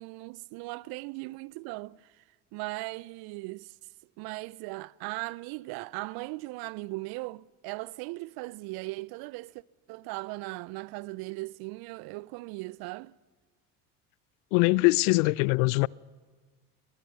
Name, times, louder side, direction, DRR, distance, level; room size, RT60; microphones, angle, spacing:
voice 1, 0.0-2.2 2.5-3.7 4.2-9.5 9.9-13.2, right 22 dB, 55° right, 0.5 m, -38 dB
voice 2, 14.5-15.9, left 24 dB, 65° left, 0.5 m, -22 dB
20.5 x 19.0 x 6.9 m
hypercardioid pair, 65°, 45 cm